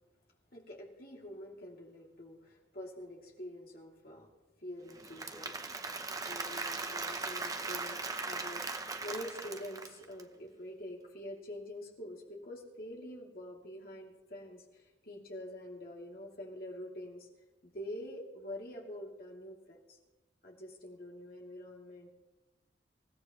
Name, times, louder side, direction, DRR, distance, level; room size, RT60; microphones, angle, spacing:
voice 1, 0.5-4.3 4.6-5.6 6.1-8.6 9.0-17.3 17.6-20.0 20.4-22.1, left 1 dB, 55° left, -2 dB, 2.7 m, -46 dB
Applause / Crowd, 4.9-10.2, right 3 dB, 20° right, 0.8 m, -39 dB
27.0 x 15.5 x 3.1 m, 1.1 s
head